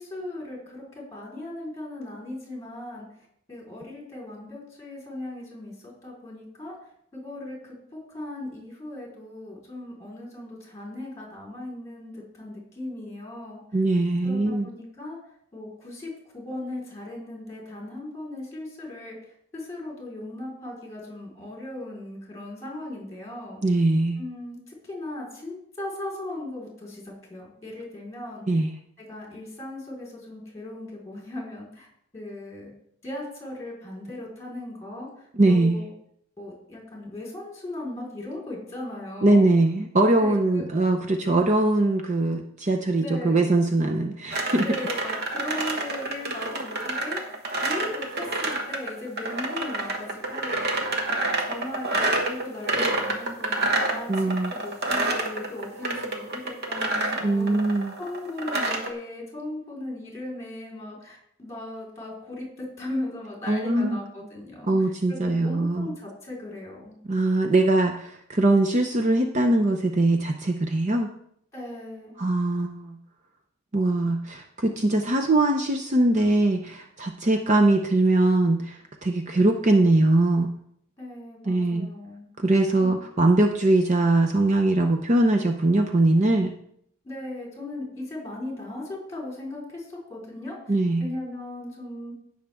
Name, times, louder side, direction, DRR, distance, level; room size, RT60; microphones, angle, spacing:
voice 1, 0.0-3.1 3.5-6.7 7.1-13.6 14.2-15.2 15.5-19.2 19.5-23.6 24.2-28.4 29.1-31.9 32.1-32.7 33.0-35.1 35.5-35.9 36.4-39.5 40.2-40.6 43.0-43.5 44.6-47.2 47.6-51.2 51.5-64.7 65.1-67.0 71.5-72.2 81.0-82.3 82.8-82.9 87.0-90.6 91.0-92.1, left 1 dB, 15° left, -3 dB, 4.1 m, -37 dB
voice 2, 13.7-14.7 23.6-24.2 28.5-28.7 35.3-35.8 39.2-44.7 54.1-54.5 57.2-57.9 63.5-64.0 64.6-65.9 67.0-71.1 72.2-73.0 73.7-80.5 81.5-81.9 82.4-86.5 90.7-91.1, right 2 dB, 35° right, 4 dB, 0.6 m, -22 dB
sound 1, 44.3-58.9, right 2 dB, 50° right, 1.3 m, -28 dB
16.5 x 6.4 x 3.5 m, 0.70 s
head